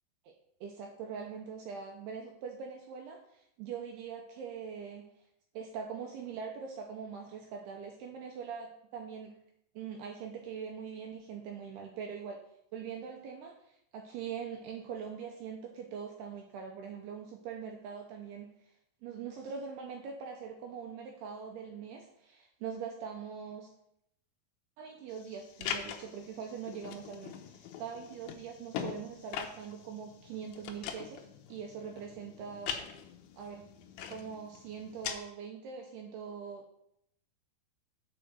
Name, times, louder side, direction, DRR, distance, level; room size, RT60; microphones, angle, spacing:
voice 1, 0.6-5.0 5.5-9.3 9.8-12.4 12.7-18.5 19.0-23.7 24.8-32.8 33.4-33.6 34.1-36.7, right 6 dB, 80° right, 2 dB, 2.4 m, -42 dB
sound 1, 25.1-35.2, left 8 dB, 90° left, 2.1 m, -43 dB
7.8 x 4.9 x 6.5 m, 0.76 s
omnidirectional pair, 5.4 m